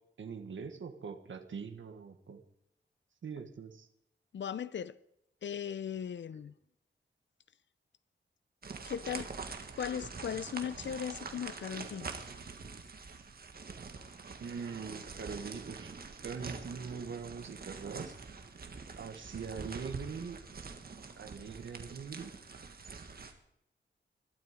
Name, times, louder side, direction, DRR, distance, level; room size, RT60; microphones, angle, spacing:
voice 1, 0.2-2.4 3.2-3.9 14.4-15.9 16.2-18.1 19.0-20.4 21.2-22.3, right 6 dB, 80° right, 1.6 m, -42 dB
voice 2, 4.3-5.0 5.4-6.5 8.9-9.3 9.8-12.1, left 8 dB, 70° left, 0.6 m, -38 dB
sound 1, 8.6-23.3, right 4 dB, 50° right, 1.6 m, -45 dB
21.0 x 12.5 x 5.1 m
wide cardioid pair, 155°, 20 cm